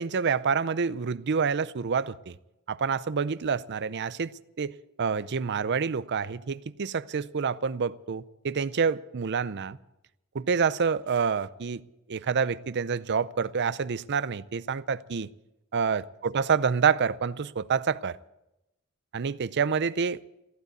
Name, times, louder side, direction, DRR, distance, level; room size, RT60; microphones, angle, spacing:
voice 1, 0.0-2.4 2.7-4.3 4.6-4.7 5.0-9.8 10.3-11.8 12.1-15.3 15.7-18.2 19.1-20.2, right 6 dB, 50° right, 0.5 m, -27 dB
15.0 x 12.0 x 8.1 m
head